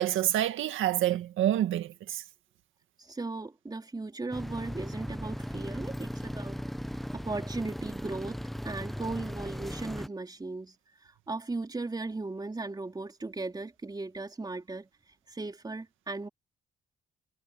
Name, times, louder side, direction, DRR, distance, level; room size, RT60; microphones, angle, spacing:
voice 1, 0.0-2.2, right 12 dB, 80° right, 2.0 m, -27 dB
voice 2, 3.0-6.6 6.9-16.3, right 3 dB, 20° right, 4.3 m, -37 dB
sound 1, 4.3-10.1, equal, ahead, 1.0 m, -37 dB
cardioid pair, 90°, 20 cm